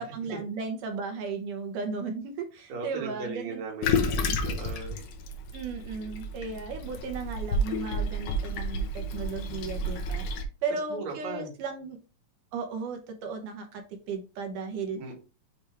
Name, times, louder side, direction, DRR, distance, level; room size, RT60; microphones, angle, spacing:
voice 1, 0.0-4.4 5.5-10.3 10.6-12.0 12.5-13.8 14.1-15.0, right 4 dB, 75° right, 4 dB, 2.0 m, -35 dB
voice 2, 2.7-5.0 10.9-11.5 15.0-15.1, right 4 dB, 50° right, 0 dB, 2.9 m, -37 dB
Toilet flush, 3.8-10.4, left 1 dB, 70° left, 2.2 m, -30 dB
7.0 x 3.4 x 4.4 m, 0.32 s
omnidirectional pair, 4.4 m